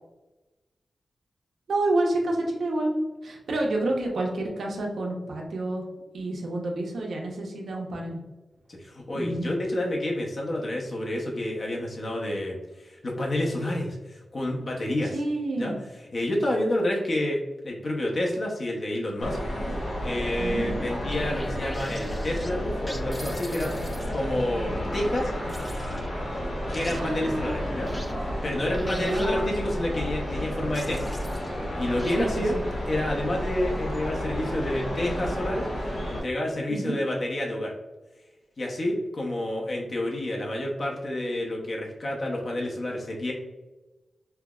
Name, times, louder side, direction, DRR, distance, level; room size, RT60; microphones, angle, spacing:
voice 1, 1.7-5.8 6.1-8.2 9.1-9.5 15.1-15.8 19.6-19.7 20.4-20.8 26.9-28.0 28.8-29.8 32.2-32.6 36.7-37.0, right 2 dB, 85° right, 0 dB, 0.8 m, -29 dB
voice 2, 8.7-15.2 15.6-15.7 16.1-19.4 20.0-25.3 26.7-27.9 28.4-31.1 31.7-32.6 32.9-35.7 36.1-37.7 38.6-43.3, left 1 dB, 50° left, -2 dB, 0.7 m, -29 dB
sound 1, 19.2-36.2, equal, 85° left, 1.4 m, -31 dB
sound 2, 20.0-24.5 25.5-31.7 32.0-32.6, left 1 dB, 15° left, 0.4 m, -43 dB
5.4 x 2.0 x 2.3 m, 1.1 s
wide cardioid pair, 90°, 0 cm